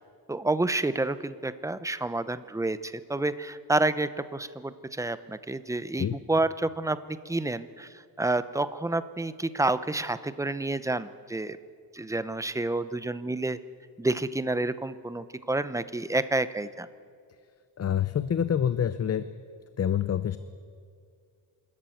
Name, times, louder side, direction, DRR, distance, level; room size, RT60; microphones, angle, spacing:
voice 1, 0.3-7.0 7.2-7.9 8.2-11.6 11.9-13.6 14.0-16.9, right 2 dB, 10° right, 13 dB, 0.7 m, -29 dB
voice 2, 17.8-19.2 19.8-20.4, left 9 dB, 40° left, 13 dB, 0.7 m, -26 dB
25.0 x 14.0 x 9.1 m, 2.2 s
wide cardioid pair, 130°, 39 cm